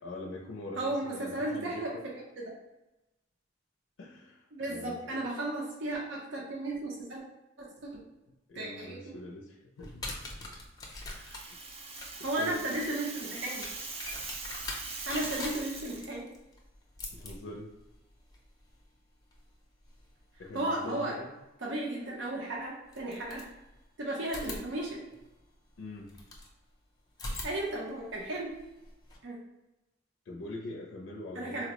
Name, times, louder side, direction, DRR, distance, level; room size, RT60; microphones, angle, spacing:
voice 1, 0.0-2.0 4.0-5.3 8.5-10.1 12.4-12.5 17.1-17.7 20.4-21.4 25.8-26.1 30.3-31.6, left 2 dB, 70° left, -1 dB, 0.4 m, -43 dB
voice 2, 0.8-2.5 4.5-7.2 7.6-7.9 8.5-9.0 12.2-13.7 15.1-16.3 20.5-21.2 21.6-23.4 24.0-25.0 27.4-28.5 29.2-29.4 31.3-31.6, right 1 dB, 70° right, -2 dB, 0.7 m, -34 dB
sound 1, 9.8-20.6 22.1-22.2 22.9-23.9 24.2-26.5 27.1-29.2, left 2 dB, 20° left, 0.5 m, -44 dB
Rattle (instrument), 10.9-16.1, right 3 dB, 30° right, 0.4 m, -42 dB
4.1 x 2.0 x 2.9 m, 0.99 s
head